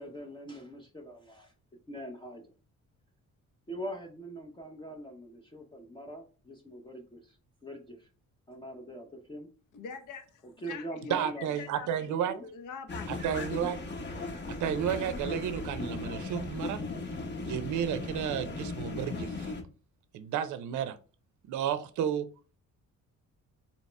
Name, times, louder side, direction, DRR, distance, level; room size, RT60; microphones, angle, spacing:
voice 1, 0.0-1.5 1.9-2.4 3.7-7.4 7.6-8.1 8.5-9.5 10.6-11.5 12.1-12.5, right 1 dB, 15° left, 0.5 m, -42 dB
voice 2, 9.7-12.1 12.4-13.1, left 4 dB, 75° left, 0.8 m, -43 dB
voice 3, 11.1-12.3 13.1-13.8 14.5-16.8 17.4-19.5 20.1-21.0 21.5-22.3, right 9 dB, 70° right, 0.5 m, -32 dB
sound 1, 12.9-19.6, left 3 dB, 35° left, 0.8 m, -37 dB
4.1 x 2.9 x 3.2 m
cardioid pair, 135°, 31 cm